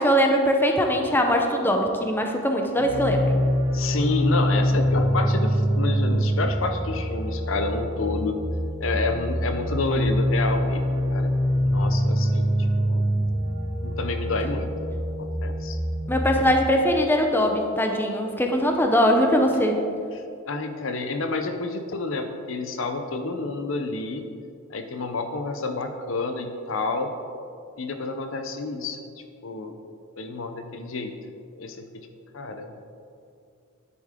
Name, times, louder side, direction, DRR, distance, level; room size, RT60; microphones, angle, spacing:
voice 1, 0.0-3.2 16.1-19.8, equal, 10° left, 3 dB, 0.7 m, -21 dB
sound 1, 2.8-16.5, equal, 25° right, 2.3 m, -24 dB
voice 2, 3.7-8.4 8.8-10.8 11.1-11.3 11.7-12.5 12.8-13.0 13.8-14.9 15.2-15.8 20.1-24.3 24.7-27.1 27.8-29.0 29.4-29.8 30.2-31.1 31.6-32.1 32.3-32.7, left 3 dB, 70° left, 7 dB, 0.7 m, -29 dB
9.8 x 7.9 x 3.7 m, 2.4 s
head